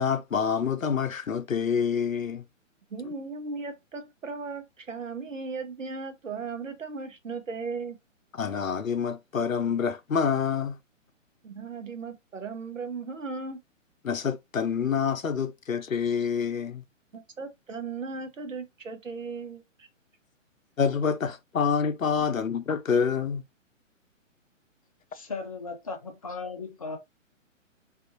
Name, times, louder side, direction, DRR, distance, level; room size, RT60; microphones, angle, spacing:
voice 1, 0.0-2.4 8.4-10.8 14.0-16.8 20.8-23.4, left 6 dB, 85° left, 0.5 m, -27 dB
voice 2, 2.9-8.0 11.4-13.6 17.1-19.9, right 4 dB, 70° right, 0.8 m, -37 dB
voice 3, 25.1-27.0, left 4 dB, 30° left, 0.5 m, -36 dB
2.6 x 2.4 x 2.5 m
figure-of-eight pair, 130°, 39 cm